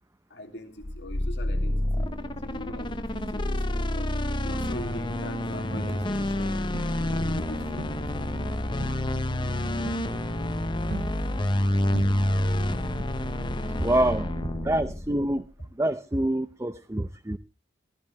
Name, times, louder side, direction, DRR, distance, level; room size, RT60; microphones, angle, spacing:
voice 1, 0.3-2.1 2.4-4.1 4.4-6.6 6.9-8.0, left 1 dB, 75° left, 2.5 m, -42 dB
sound 1, 0.8-15.4, left 1 dB, 25° left, 0.7 m, -28 dB
sound 2, 1.6-14.9, right 1 dB, 60° right, 1.6 m, -44 dB
Crowd, 4.6-6.4 6.7-11.7 11.9-12.6 13.0-13.1, right 3 dB, 75° right, 1.0 m, -42 dB
voice 2, 13.8-14.3 14.6-15.4 15.8-17.4, right 1 dB, 15° right, 0.6 m, -26 dB
16.0 x 14.5 x 3.3 m
head